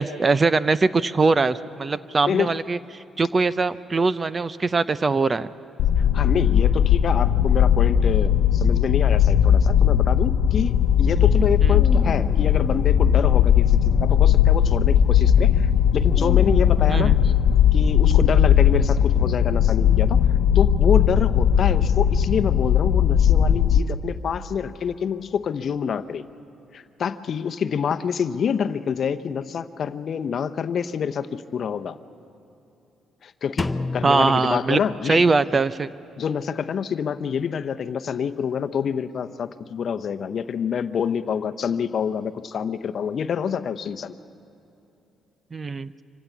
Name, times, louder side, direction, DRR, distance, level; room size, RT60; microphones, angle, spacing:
voice 1, 0.0-5.5 11.6-11.7 16.9-17.2 34.0-34.8 35.1-35.9 45.5-45.9, right 3 dB, 30° right, 15 dB, 0.6 m, -22 dB
sound 1, 5.8-23.8, left 9 dB, 90° left, 0.7 m, -18 dB
voice 2, 6.1-17.3 17.7-20.2 20.5-26.2 26.7-32.0 33.2-35.3 36.2-44.1, left 7 dB, 55° left, 10 dB, 0.8 m, -27 dB
sound 2, 10.6-18.8, left 3 dB, 35° left, 1.5 m, -38 dB
Drum, 33.6-35.5, left 2 dB, 15° left, 0.8 m, -31 dB
25.5 x 16.0 x 8.4 m, 2.8 s
cardioid pair, 90°, 0 cm